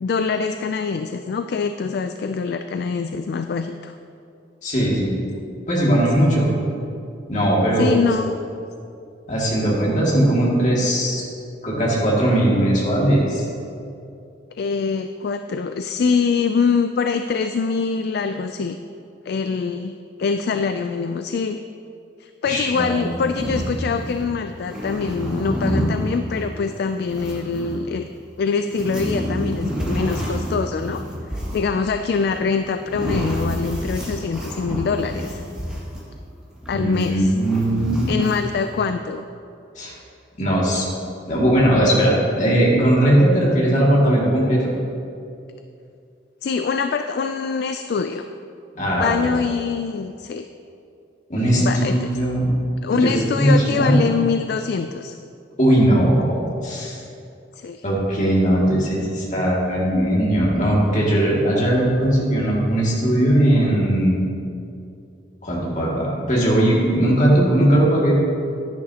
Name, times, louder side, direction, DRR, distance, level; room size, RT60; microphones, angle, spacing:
voice 1, 0.0-3.9 7.8-8.3 14.6-18.8 19.3-21.6 22.2-28.1 28.4-31.0 31.5-35.4 36.7-37.3 38.1-39.2 46.4-48.3 49.0-50.5 51.6-52.1 52.8-55.1 56.2-56.3 57.6-57.8, left 5 dB, 55° left, 8 dB, 0.3 m, -24 dB
voice 2, 4.6-5.2 5.7-6.5 7.3-8.1 9.3-11.2 11.6-13.5 22.4-23.1 36.7-38.1 39.8-39.9 40.4-40.9 41.3-44.7 48.7-49.3 51.3-52.5 53.0-54.0 55.6-57.0 57.8-64.2 65.4-68.1, right 1 dB, 40° left, -5 dB, 2.2 m, -19 dB
sound 1, 22.9-24.3 24.6-27.8 28.5-36.1 36.6-38.6, equal, 5° right, 1.7 m, -28 dB
11.0 x 10.5 x 2.9 m, 2.5 s
head